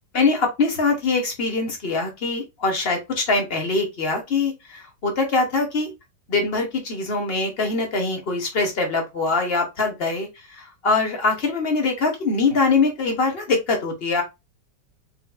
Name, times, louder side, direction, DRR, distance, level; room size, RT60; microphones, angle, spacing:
voice 1, 0.1-5.9 6.3-14.2, left 3 dB, 35° left, 1.3 m, -23 dB
4.0 x 3.7 x 2.2 m
omnidirectional pair, 1.9 m